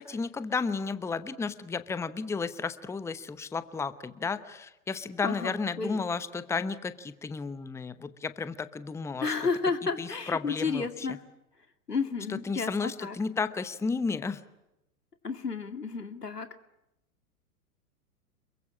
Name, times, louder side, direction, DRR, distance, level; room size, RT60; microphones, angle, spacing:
voice 1, 0.0-9.3 10.0-11.1 12.5-14.4, left 4 dB, 5° left, 14 dB, 0.9 m, -33 dB
voice 2, 5.2-6.0 9.2-11.2 11.9-13.2 15.2-16.5, left 4 dB, 90° left, 10 dB, 2.4 m, -32 dB
27.5 x 23.0 x 8.5 m, 0.90 s
figure-of-eight pair, 105°, 46 cm